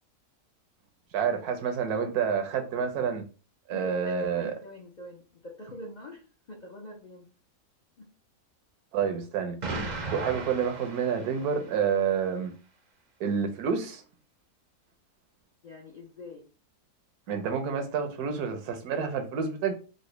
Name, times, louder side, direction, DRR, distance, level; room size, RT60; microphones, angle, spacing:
voice 1, 1.1-3.2 3.7-4.5 8.9-9.6 10.1-12.5 13.2-14.0 17.3-19.7, right 6 dB, 75° right, 1.2 m, -28 dB
voice 2, 3.7-7.3 8.0-8.1 15.6-16.5, left 1 dB, 60° left, 0.4 m, -45 dB
Explosion, 9.6-11.8, right 3 dB, 50° right, 0.5 m, -36 dB
3.8 x 2.1 x 3.1 m
omnidirectional pair, 1.6 m